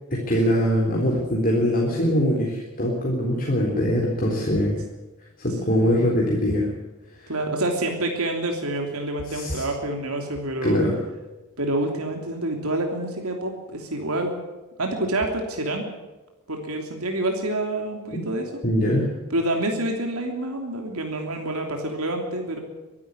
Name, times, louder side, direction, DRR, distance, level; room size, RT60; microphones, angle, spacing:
voice 1, 0.1-4.8 5.4-6.7 7.2-7.3 9.3-9.6 10.6-10.9 18.1-18.2 18.6-19.1, equal, 40° left, -2 dB, 3.7 m, -22 dB
voice 2, 5.7-6.0 7.3-10.8 11.6-14.4 14.8-15.8 16.5-18.5 19.3-22.6, right 1 dB, 80° right, 2 dB, 3.2 m, -27 dB
24.0 x 12.0 x 9.7 m, 1.1 s
head